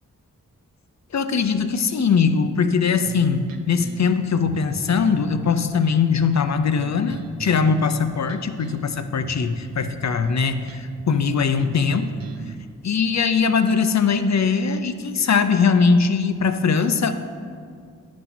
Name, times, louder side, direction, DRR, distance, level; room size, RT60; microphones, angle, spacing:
voice 1, 1.1-12.1 12.8-17.1, left 5 dB, 55° left, 10 dB, 0.6 m, -21 dB
sound 1, 3.0-12.6, right 5 dB, 80° right, 0.7 m, -39 dB
9.7 x 4.1 x 6.0 m, 2.2 s
cardioid pair, 55°, 34 cm